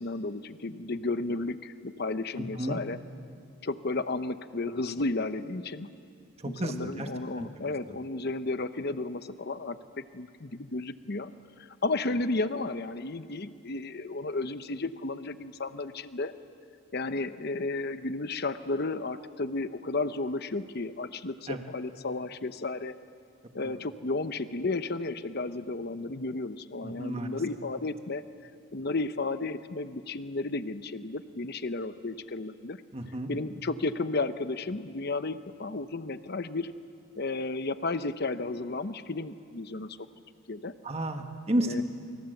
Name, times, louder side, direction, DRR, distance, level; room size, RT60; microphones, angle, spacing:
voice 1, 0.0-3.0 3.6-5.9 6.4-11.3 11.8-16.3 16.9-22.9 23.5-28.2 28.7-32.8 33.3-36.7 37.1-40.0 40.5-40.7 41.6-41.8, left 3 dB, 50° left, 11 dB, 0.8 m, -33 dB
voice 2, 2.4-2.8 6.4-7.1 7.4-7.5 7.9-8.0 21.5-21.6 23.6-23.8 26.8-27.4 32.9-33.3 40.8-41.8, right 1 dB, 30° right, 5 dB, 1.5 m, -32 dB
27.5 x 26.0 x 7.9 m, 2.3 s
head